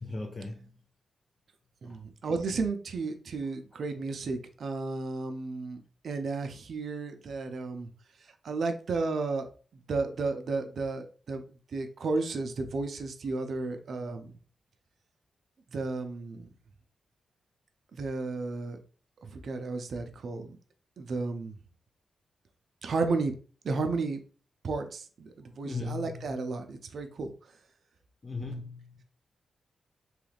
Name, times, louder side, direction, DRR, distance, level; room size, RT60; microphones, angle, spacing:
voice 1, 0.0-0.7 1.8-2.0 25.6-26.4 28.2-29.0, left 3 dB, 30° left, 0.4 m, -38 dB
voice 2, 1.8-7.9 8.4-9.5 9.9-11.4 11.7-14.3 15.7-16.5 17.9-18.8 19.2-20.6 21.0-21.5 22.8-23.3 23.6-24.2 24.6-27.3, right 3 dB, 65° right, 0.5 m, -33 dB
3.1 x 2.4 x 3.2 m
wide cardioid pair, 115°, 0 cm